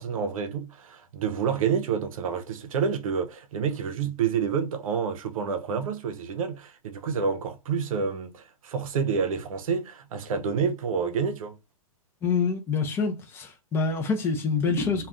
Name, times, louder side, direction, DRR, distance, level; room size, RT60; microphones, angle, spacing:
voice 1, 0.0-11.6, right 6 dB, 75° right, 0.6 m, -28 dB
voice 2, 12.2-15.1, left 4 dB, 15° left, 0.4 m, -26 dB
2.5 x 2.2 x 3.4 m
hypercardioid pair, 145°, 18 cm